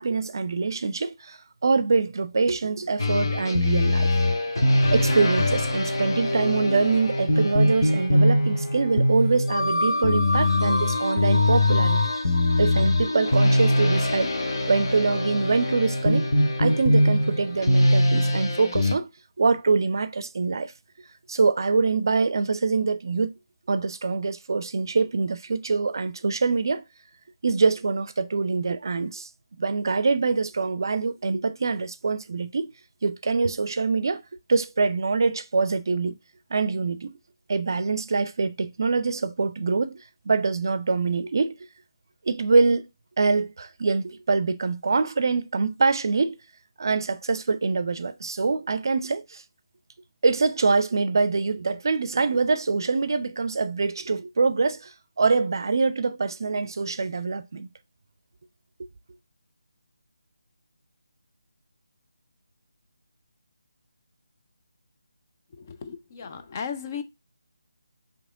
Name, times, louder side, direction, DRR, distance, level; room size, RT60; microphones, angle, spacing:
voice 1, 0.0-4.1 4.9-12.0 12.6-16.3 16.6-19.1 19.4-20.7 21.3-23.4 23.7-26.8 27.4-29.3 29.6-32.7 33.0-34.2 34.5-36.2 36.5-37.2 37.5-40.0 40.3-41.6 42.3-42.8 43.2-46.4 46.8-49.4 50.2-57.7, right 4 dB, 55° right, 0.4 m, -24 dB
sound 1, 3.0-19.0, left 1 dB, 60° left, 1.0 m, -22 dB
voice 2, 65.6-67.0, left 6 dB, 35° left, 0.4 m, -35 dB
4.8 x 2.8 x 3.6 m
figure-of-eight pair, 155°, 2 cm